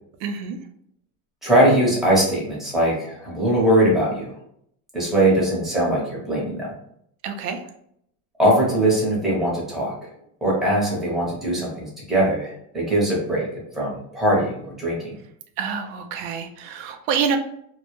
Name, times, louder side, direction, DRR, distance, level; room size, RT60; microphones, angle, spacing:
voice 1, 0.2-0.6 7.2-7.6 15.6-17.4, right 6 dB, 85° right, 6 dB, 0.6 m, -27 dB
voice 2, 1.4-4.3 4.9-6.7 8.4-10.1 10.4-13.5 13.7-15.1, right 1 dB, ahead, -5 dB, 0.7 m, -21 dB
2.2 x 2.1 x 3.0 m, 0.70 s
cardioid pair, 135°, 46 cm